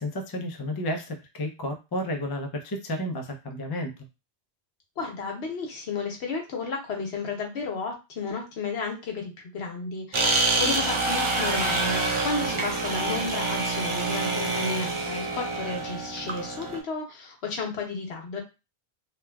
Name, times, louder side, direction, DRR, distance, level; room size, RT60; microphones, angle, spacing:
voice 1, 0.0-3.9, left 1 dB, 40° left, 3 dB, 0.3 m, -32 dB
voice 2, 5.0-18.4, left 4 dB, 80° left, 1 dB, 1.1 m, -33 dB
sound 1, 10.1-16.8, right 3 dB, 45° right, 0.4 m, -27 dB
3.2 x 2.2 x 2.2 m, 0.27 s
omnidirectional pair, 1.1 m